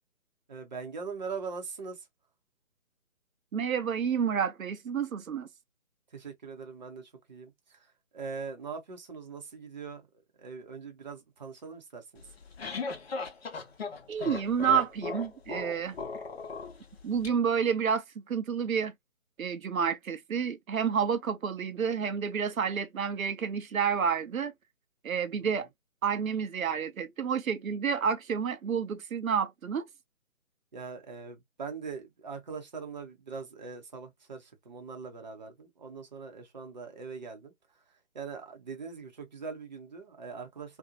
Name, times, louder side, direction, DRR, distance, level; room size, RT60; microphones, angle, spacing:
voice 1, 0.5-2.0 6.1-7.9 8.1-10.1 10.4-12.3 30.7-37.5 38.1-40.8, right 5 dB, 35° right, 0.6 m, -41 dB
voice 2, 3.5-5.5 14.1-16.0 17.0-18.9 19.4-24.5 25.0-25.7 26.0-29.9, right 7 dB, 85° right, 0.6 m, -29 dB
sound 1, 12.2-17.3, left 4 dB, 50° left, 0.7 m, -37 dB
2.5 x 2.0 x 2.6 m
figure-of-eight pair, 150°, 40 cm